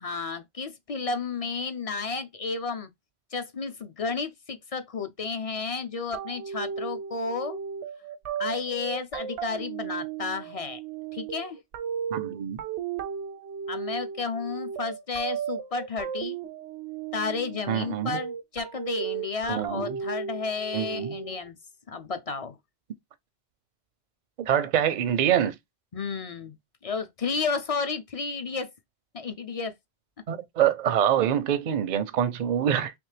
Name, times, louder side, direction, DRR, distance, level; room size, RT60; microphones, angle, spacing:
voice 1, 0.0-2.9 3.3-7.6 8.4-10.8 11.1-11.6 13.7-16.4 17.1-21.6 21.9-22.6 25.9-26.6 26.8-28.7 29.1-29.7, left 4 dB, 45° left, 0.5 m, -32 dB
sound 1, 6.1-21.5, right 7 dB, 85° right, 0.9 m, -35 dB
voice 2, 12.1-12.6 17.7-18.2 19.5-20.0 20.7-21.2 24.4-25.6 30.3-32.9, right 9 dB, 55° right, 0.5 m, -25 dB
3.4 x 3.1 x 3.2 m
omnidirectional pair, 1.1 m